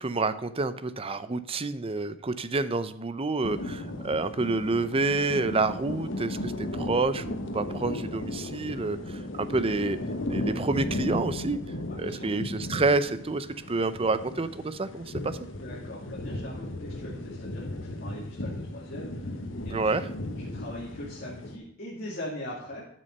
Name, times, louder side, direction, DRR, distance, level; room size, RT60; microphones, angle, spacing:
voice 1, 0.0-10.0 10.3-11.6 12.0-15.4 19.7-20.1, right 3 dB, 30° right, 13 dB, 0.6 m, -28 dB
sound 1, 3.4-21.6, left 1 dB, 80° left, 1.1 m, -36 dB
voice 2, 11.9-12.3 15.6-19.9 20.4-22.9, left 1 dB, 55° left, -5 dB, 2.4 m, -41 dB
12.0 x 6.2 x 5.4 m, 0.74 s
head